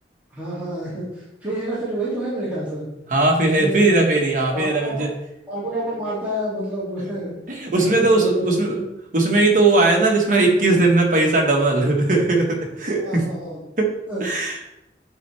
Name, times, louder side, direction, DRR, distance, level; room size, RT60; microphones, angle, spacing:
voice 1, 0.3-2.9 3.4-4.0 4.5-5.1 5.5-7.4 7.7-8.6 13.0-13.6 14.1-14.2, right 1 dB, 10° right, -11 dB, 2.3 m, -29 dB
voice 2, 3.1-5.1 7.5-8.8 9.1-13.2 13.8-13.9 14.2-14.6, right 2 dB, 45° right, 1 dB, 1.3 m, -18 dB
8.9 x 4.5 x 3.3 m, 0.84 s
head